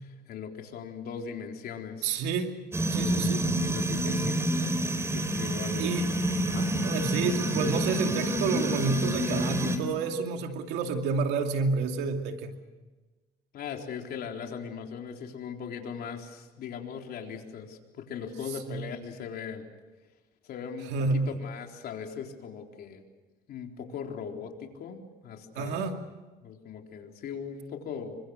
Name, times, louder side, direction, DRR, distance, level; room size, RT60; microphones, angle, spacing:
voice 1, 0.3-2.2 2.9-6.7 13.5-19.6 20.4-23.0 23.5-25.9 26.4-28.2, left 7 dB, 65° left, 3 dB, 4.0 m, -39 dB
voice 2, 2.0-2.5 2.9-3.4 5.8-6.0 6.8-12.5 18.7-18.8 20.9-21.3 25.6-25.9, right 4 dB, 90° right, 5 dB, 2.6 m, -29 dB
sound 1, 2.7-9.8, right 1 dB, 15° right, 3.5 m, -28 dB
29.0 x 24.5 x 6.6 m, 1.2 s
cardioid pair, 110°, 17 cm